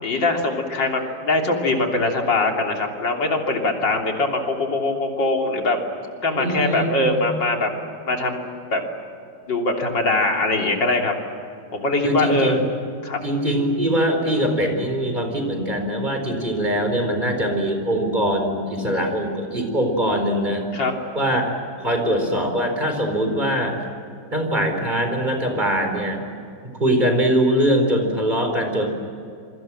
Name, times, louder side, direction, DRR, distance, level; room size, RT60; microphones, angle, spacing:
voice 1, 0.0-5.8 6.2-7.7 8.1-8.8 9.5-11.1 11.7-12.6 13.0-13.2 20.7-20.9, left 2 dB, 70° left, 1 dB, 3.9 m, -22 dB
voice 2, 6.3-7.2 12.0-12.6 13.2-20.6 21.1-21.5 21.8-23.8 24.3-26.2 26.8-28.9, equal, 25° right, 4 dB, 4.6 m, -22 dB
28.0 x 23.5 x 7.6 m, 2.5 s
omnidirectional pair, 2.1 m